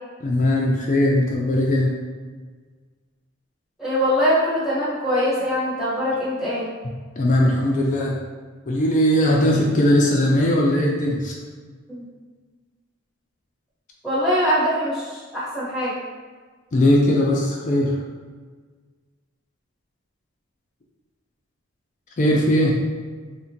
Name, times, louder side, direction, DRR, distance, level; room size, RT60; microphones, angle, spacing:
voice 1, 0.2-1.9 7.2-8.1 8.7-11.3 16.7-17.9 22.2-22.7, left 1 dB, 40° left, -2 dB, 0.4 m, -19 dB
voice 2, 3.8-6.7 11.9-12.1 14.0-15.9, equal, ahead, -11 dB, 1.0 m, -22 dB
3.5 x 2.1 x 2.7 m, 1.5 s
head